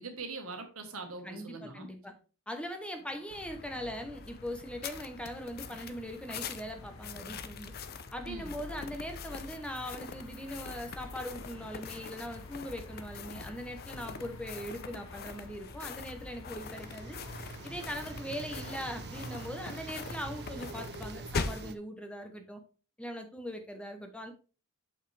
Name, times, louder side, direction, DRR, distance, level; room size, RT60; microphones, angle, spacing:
voice 1, 0.0-1.9 8.3-8.5, right 3 dB, 75° right, 5 dB, 1.5 m, -42 dB
voice 2, 1.2-2.1 2.5-7.7 8.1-17.2 17.6-22.6 23.0-24.3, equal, 5° left, 5 dB, 0.9 m, -41 dB
sound 1, 3.0-21.4, left 3 dB, 65° left, 1.2 m, -56 dB
sound 2, 3.3-21.7, left 5 dB, 45° left, 0.6 m, -43 dB
sound 3, 16.6-21.8, right 4 dB, 50° right, 0.5 m, -45 dB
6.9 x 5.5 x 3.3 m, 0.35 s
head